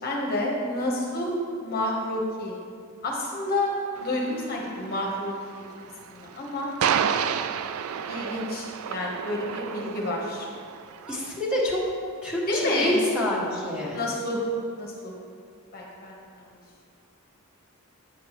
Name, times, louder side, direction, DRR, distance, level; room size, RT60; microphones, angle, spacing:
voice 1, 0.0-1.3 1.6-2.6 3.0-3.7 4.0-5.7 6.1-6.7 8.1-10.5 12.5-13.0 13.9-14.4 14.8-15.1 15.7-16.5, left 1 dB, 45° left, -2 dB, 1.0 m, -29 dB
sound 1, 3.9-11.4, right 8 dB, 75° right, 0.3 m, -31 dB
voice 2, 11.1-11.8 12.2-14.0, left 1 dB, 5° right, -7 dB, 1.6 m, -27 dB
9.1 x 7.3 x 3.0 m, 2.4 s
head